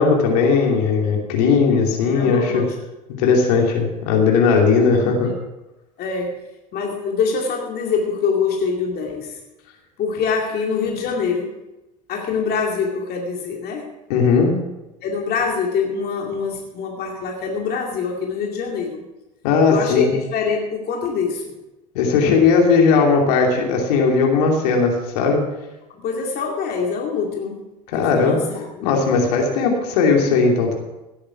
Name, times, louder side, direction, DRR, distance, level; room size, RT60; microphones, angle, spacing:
voice 1, 0.0-2.7 3.2-5.3 14.1-14.5 19.4-20.1 21.9-25.4 27.9-28.4 28.8-30.8, left 5 dB, 75° left, 1 dB, 2.9 m, -17 dB
voice 2, 2.1-2.7 5.0-5.3 6.0-6.4 6.7-9.4 10.0-11.5 12.1-13.9 15.0-19.0 19.7-21.5 25.9-27.6 27.9-28.8, left 5 dB, 50° left, 0 dB, 2.3 m, -24 dB
17.0 x 8.7 x 5.8 m, 1.0 s
hypercardioid pair, 70°, 20 cm